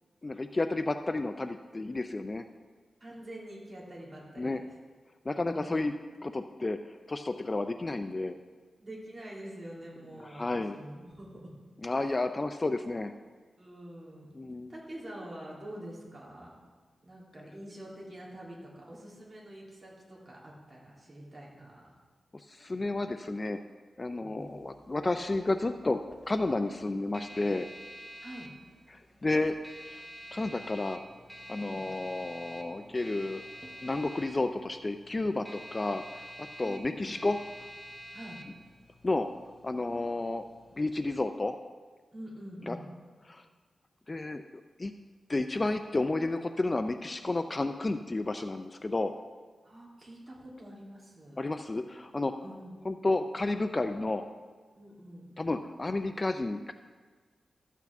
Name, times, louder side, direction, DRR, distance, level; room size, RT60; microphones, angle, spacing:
voice 1, 0.2-2.4 4.4-4.6 5.3-5.9 6.2-6.8 7.1-8.4 10.2-10.8 11.8-13.1 14.3-14.7 22.3-23.6 24.0-26.0 26.3-27.7 28.9-29.6 30.3-31.0 31.5-33.4 33.8-37.4 39.0-39.3 39.6-40.5 40.8-41.5 42.7-42.8 43.3-43.4 44.1-44.4 44.8-44.9 45.3-49.1 51.4-52.3 52.9-54.2 55.4-56.7, left 2 dB, 25° left, 8 dB, 0.3 m, -31 dB
voice 2, 3.0-4.7 5.4-5.9 8.8-11.5 12.0-12.2 13.6-14.4 14.7-16.6 17.0-21.9 24.2-24.5 28.2-28.5 31.6-31.9 36.6-37.2 38.1-38.4 42.1-42.9 49.6-51.5 52.3-52.8 54.8-55.2, right 1 dB, 30° right, -5 dB, 2.9 m, -46 dB
sound 1, 24.4-41.2, equal, 5° right, 0.8 m, -49 dB
13.0 x 8.3 x 3.5 m, 1.4 s
wide cardioid pair, 100°, 0 cm